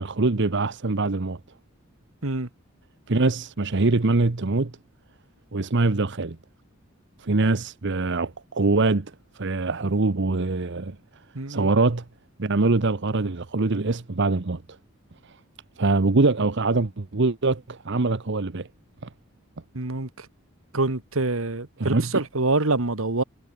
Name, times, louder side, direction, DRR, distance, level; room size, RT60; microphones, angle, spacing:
voice 1, 0.0-1.4 3.1-4.7 5.5-6.4 7.2-11.0 11.5-12.0 12.4-14.6 15.8-18.7 21.8-22.1, right 3 dB, 60° right, 1.0 m, -23 dB
voice 2, 11.4-11.7 19.7-20.1 20.7-23.2, right 2 dB, 80° right, 1.9 m, -25 dB
head